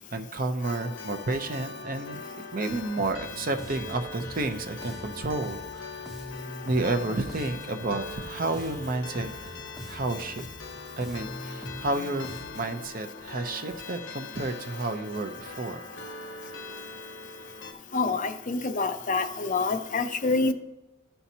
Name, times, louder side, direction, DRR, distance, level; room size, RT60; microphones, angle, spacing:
voice 1, 0.1-2.2 2.5-6.1 6.6-9.6 9.9-10.4 11.0-15.8, right 2 dB, 45° right, 7 dB, 0.7 m, -31 dB
sound 1, 0.6-17.7, left 3 dB, 85° left, 1.0 m, -42 dB
Bass guitar, 3.0-12.9, equal, ahead, 0.7 m, -43 dB
voice 2, 17.9-20.5, left 3 dB, 40° left, 8 dB, 0.6 m, -27 dB
14.0 x 5.7 x 2.8 m, 0.98 s
head